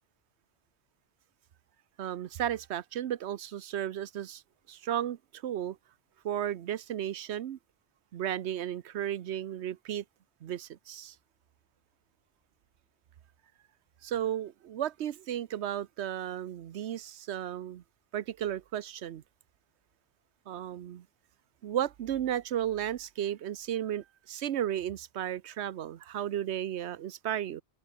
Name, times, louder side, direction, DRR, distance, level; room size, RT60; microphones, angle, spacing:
voice 1, 2.0-4.4 4.7-5.8 6.2-7.6 8.1-10.0 10.4-11.1 14.0-17.8 18.1-19.2 20.5-21.1 21.6-27.6, right 11 dB, 85° right, 1.0 m, -34 dB
open air
omnidirectional pair, 1.1 m